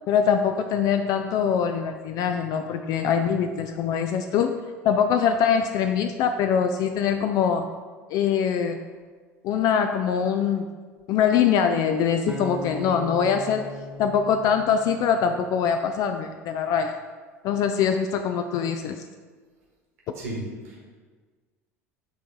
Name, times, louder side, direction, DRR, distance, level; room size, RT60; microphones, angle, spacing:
voice 1, 0.1-4.5 4.8-7.7 8.1-8.8 9.4-10.7 11.1-13.6 14.0-17.0 17.4-19.0, left 7 dB, 45° left, 7 dB, 0.4 m, -23 dB
sound 1, 12.3-15.4, left 2 dB, 10° right, 0.7 m, -38 dB
voice 2, 20.1-20.9, right 1 dB, 70° right, -4 dB, 1.6 m, -34 dB
9.6 x 3.8 x 3.6 m, 1.5 s
figure-of-eight pair, 70°, 8 cm